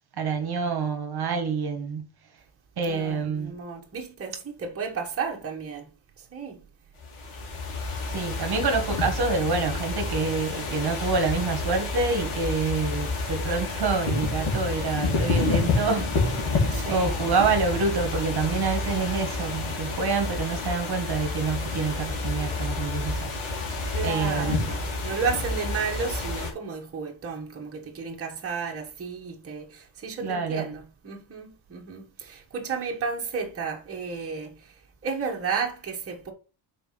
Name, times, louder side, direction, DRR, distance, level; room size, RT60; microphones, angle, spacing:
voice 1, 0.2-2.1 2.8-3.5 8.1-16.1 16.4-23.3 23.6-23.8 24.0-24.7 30.2-30.7, right 4 dB, 50° right, 1.3 m, -27 dB
voice 2, 2.9-5.9 6.2-6.6 16.5-17.1 23.9-36.3, right 5 dB, 30° right, 1.3 m, -33 dB
sound 1, 7.0-26.5, left 3 dB, 85° left, 2.6 m, -29 dB
5.7 x 4.3 x 5.7 m
wide cardioid pair, 165°, 48 cm